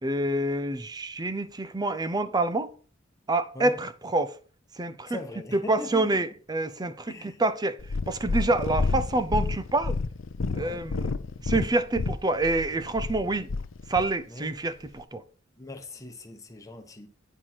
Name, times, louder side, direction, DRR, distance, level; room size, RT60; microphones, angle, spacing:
voice 1, 0.0-2.7 3.3-4.4 4.8-5.2 5.5-7.8 8.1-10.0 10.5-11.2 11.4-13.5 13.9-15.2, right 2 dB, 20° right, 0.5 m, -27 dB
voice 2, 5.1-6.2 7.1-7.4 10.6-10.8 14.3-14.5 15.6-17.1, left 2 dB, 15° left, 1.1 m, -40 dB
Purr, 7.8-14.1 14.9-15.0, left 3 dB, 70° left, 0.6 m, -30 dB
9.7 x 4.6 x 5.7 m
head